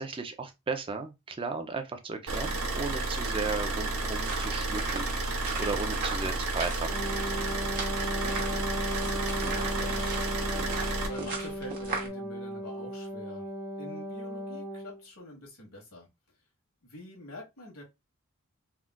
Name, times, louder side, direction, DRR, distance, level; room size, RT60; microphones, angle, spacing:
voice 1, 0.0-6.9, right 4 dB, 25° right, 0.4 m, -35 dB
Car / Idling, 2.3-11.1, right 2 dB, 90° right, 0.8 m, -31 dB
sound 1, 4.2-12.1, right 3 dB, 45° right, 1.0 m, -39 dB
Wind instrument woodwind instrument, 6.8-15.0, equal, 10° right, 1.0 m, -36 dB
voice 2, 8.2-10.4 11.0-13.5 13.8-16.1 16.8-17.8, equal, 85° left, 1.4 m, -47 dB
3.5 x 2.4 x 2.2 m
head